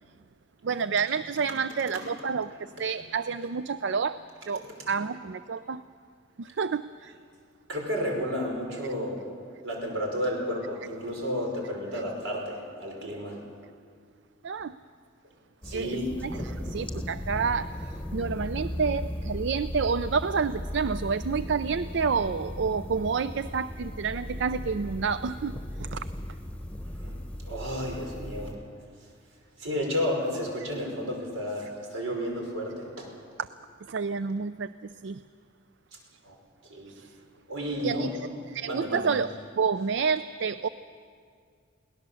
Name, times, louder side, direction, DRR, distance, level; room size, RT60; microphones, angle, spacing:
voice 1, 0.6-5.8 6.4-7.1 14.4-14.8 15.7-17.7 18.1-26.0 33.9-34.7 35.0-35.2 36.9-37.0 37.8-38.1 38.5-39.3 39.6-40.7, right 5 dB, 60° right, 13 dB, 0.4 m, -29 dB
voice 2, 7.7-9.2 9.6-13.4 15.6-16.1 16.4-16.5 27.0-27.2 27.4-28.5 29.6-33.1 36.2-36.4 36.6-37.1 37.5-38.1 38.7-39.1, equal, 80° right, 0 dB, 5.4 m, -32 dB
sound 1, 15.6-28.5, left 1 dB, 5° left, 1.0 m, -37 dB
22.5 x 18.0 x 7.0 m, 2.2 s
head